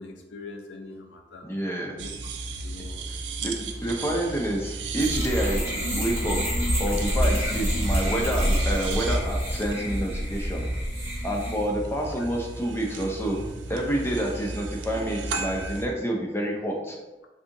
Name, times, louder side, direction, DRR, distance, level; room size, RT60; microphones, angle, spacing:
voice 1, 0.0-1.5 1.9-2.1 2.6-3.0 7.4-7.5 12.2-12.3, left 3 dB, 85° left, 3 dB, 0.5 m, -42 dB
voice 2, 1.4-2.0 3.4-5.6 6.0-6.4 6.8-10.7 11.2-13.4 13.7-17.0, right 1 dB, 15° left, 0 dB, 0.4 m, -28 dB
sound 1, 2.0-15.9, right 3 dB, 80° right, 0.4 m, -35 dB
sound 2, 5.0-11.6, equal, 15° right, 1.0 m, -27 dB
3.6 x 2.7 x 2.6 m, 1.1 s
head